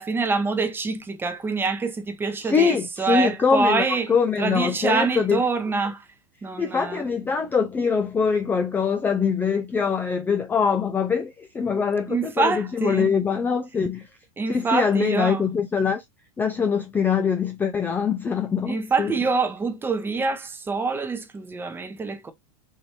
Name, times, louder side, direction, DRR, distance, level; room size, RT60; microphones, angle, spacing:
voice 1, 0.0-4.1 4.4-6.1 6.4-7.0 12.1-13.2 14.4-15.4 18.6-22.3, right 4 dB, 10° right, 0.7 m, -25 dB
voice 2, 2.4-5.4 6.6-14.1 14.5-16.0 16.4-19.1, left 6 dB, 10° left, 0.4 m, -23 dB
4.4 x 2.5 x 3.1 m
supercardioid pair, 135°, 17 cm